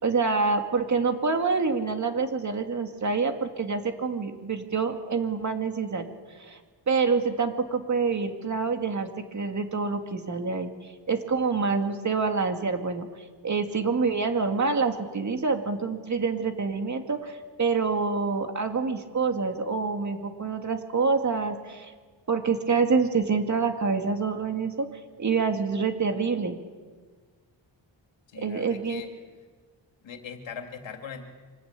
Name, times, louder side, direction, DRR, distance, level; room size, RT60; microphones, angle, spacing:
voice 1, 0.0-6.1 6.4-6.6 6.9-10.7 11.1-13.1 13.4-21.9 22.3-24.9 25.2-26.6 28.3-29.0, right 4 dB, 40° right, 5 dB, 2.3 m, -26 dB
voice 2, 28.3-29.1 30.0-31.3, left 6 dB, 75° left, 4 dB, 3.0 m, -40 dB
25.5 x 19.5 x 9.0 m, 1.5 s
wide cardioid pair, 140°, 45 cm